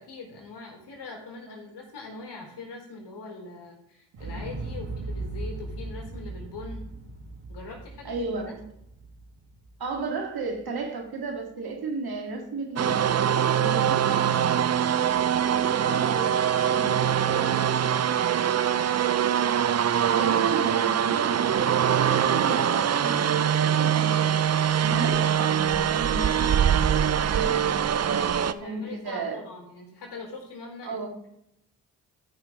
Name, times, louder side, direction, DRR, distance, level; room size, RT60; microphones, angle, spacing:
voice 1, 0.0-6.8 7.5-8.6 18.5-19.0 28.3-31.0, left 3 dB, 70° left, 0 dB, 3.6 m, -42 dB
Explosion, 4.1-10.2 10.5-10.6, right 2 dB, 75° right, 2.1 m, -38 dB
voice 2, 8.0-8.5 9.8-13.1 13.5-14.5 15.8-18.0 20.0-24.3 24.8-27.9 28.6-29.4 30.8-31.1, right 3 dB, 55° right, 2 dB, 2.1 m, -34 dB
sound 1, 12.8-28.5, right 9 dB, 40° right, 0.5 m, -23 dB
13.5 x 5.8 x 3.6 m, 0.79 s
supercardioid pair, 50°, 43 cm